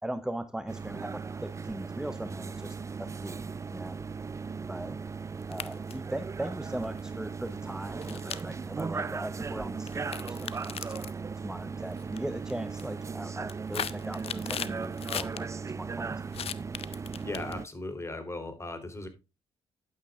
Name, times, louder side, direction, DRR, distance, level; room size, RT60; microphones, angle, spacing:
voice 1, 0.0-4.0 4.7-5.0 5.5-11.1 11.4-15.5 15.8-16.2, right 1 dB, 5° right, 11 dB, 0.9 m, -39 dB
sound 1, 0.7-17.7, right 5 dB, 25° right, 0.4 m, -37 dB
sound 2, 5.4-6.1 6.8-7.0 8.0-8.8 9.9-11.1 11.9-12.2 12.5-12.9 13.3-15.4 16.3-17.7, left 9 dB, 60° left, 0.8 m, -37 dB
voice 2, 17.2-19.1, left 2 dB, 25° left, 8 dB, 3.5 m, -37 dB
11.0 x 9.5 x 2.4 m, 0.27 s
supercardioid pair, 65°, 12 cm